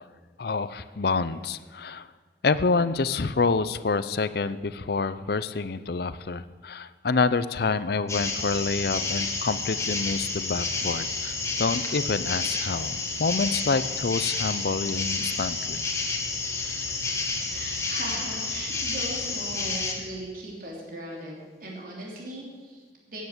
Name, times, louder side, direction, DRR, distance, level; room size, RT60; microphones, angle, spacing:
voice 1, 0.4-2.1 2.4-15.8, left 4 dB, 60° left, 15 dB, 0.6 m, -27 dB
sound 1, 8.1-19.9, left 3 dB, 15° left, 1.9 m, -30 dB
voice 2, 17.4-23.2, right 1 dB, 50° right, -2 dB, 3.2 m, -39 dB
15.0 x 9.4 x 8.0 m, 1.5 s
head